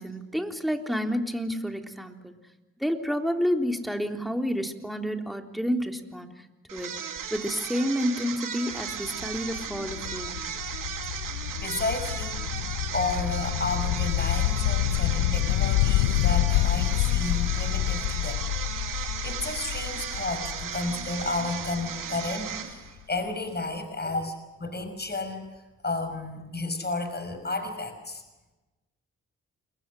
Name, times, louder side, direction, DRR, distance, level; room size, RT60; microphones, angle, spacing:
voice 1, 0.0-2.4 2.8-6.5 6.7-10.6, equal, ahead, 4 dB, 3.7 m, -30 dB
sound 1, 6.7-23.0, right 8 dB, 70° right, 2.8 m, -36 dB
sound 2, 8.7-22.4, left 15 dB, 90° left, 0.8 m, -28 dB
voice 2, 11.6-12.3 12.9-18.5 18.9-25.5 25.8-28.2, left 3 dB, 30° left, 7 dB, 6.0 m, -32 dB
29.0 x 22.0 x 6.4 m, 1.1 s
hypercardioid pair, 45°, 34 cm